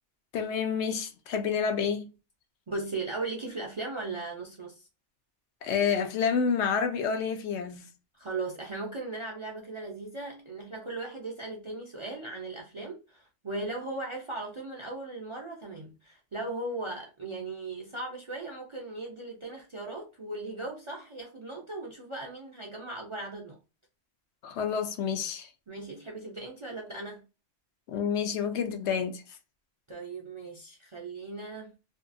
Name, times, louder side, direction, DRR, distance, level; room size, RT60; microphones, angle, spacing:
voice 1, 0.3-2.1 5.6-7.8 24.4-25.5 27.9-29.2, left 6 dB, 75° left, 0.9 m, -29 dB
voice 2, 2.7-4.9 8.2-23.6 25.7-27.2 29.9-31.7, right 2 dB, 45° right, 0.4 m, -38 dB
2.7 x 2.3 x 2.5 m
omnidirectional pair, 1.2 m